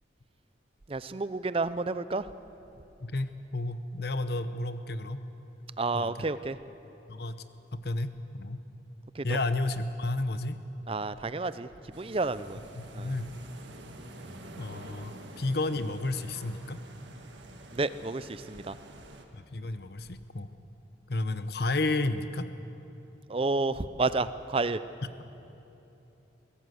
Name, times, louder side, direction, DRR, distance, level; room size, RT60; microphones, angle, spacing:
voice 1, 0.9-2.3 5.8-6.6 9.1-9.4 10.9-11.7 11.9-12.6 12.9-13.2 17.7-18.8 23.3-24.8, right 3 dB, 30° right, 14 dB, 0.5 m, -30 dB
voice 2, 3.0-5.2 5.9-6.3 7.1-7.4 7.7-8.6 9.2-10.6 12.7-13.3 14.6-16.8 19.3-20.5 21.1-22.5, left 2 dB, 55° left, 11 dB, 0.9 m, -32 dB
sound 1, 11.9-19.2, right 1 dB, 70° right, 1.7 m, -48 dB
23.5 x 16.0 x 7.8 m, 3.0 s
head